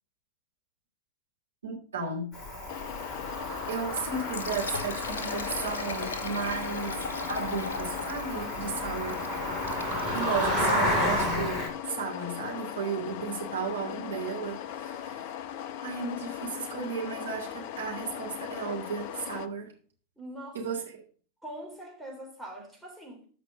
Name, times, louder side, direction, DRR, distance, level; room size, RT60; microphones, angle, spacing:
voice 1, 1.6-2.3 3.7-9.5 10.1-15.4 15.8-19.7 20.5-20.8, right 5 dB, 70° right, 3.5 m, -34 dB
Cricket, 2.3-11.7, equal, 20° left, 6.7 m, -32 dB
sound 1, 2.7-19.5, left 10 dB, 45° left, 0.7 m, -39 dB
Liquid, 4.1-11.0, left 4 dB, 65° left, 1.3 m, -39 dB
voice 2, 20.2-20.6 21.4-23.3, right 1 dB, ahead, 3.5 m, -42 dB
13.5 x 5.2 x 5.4 m
figure-of-eight pair, 90°, 0 cm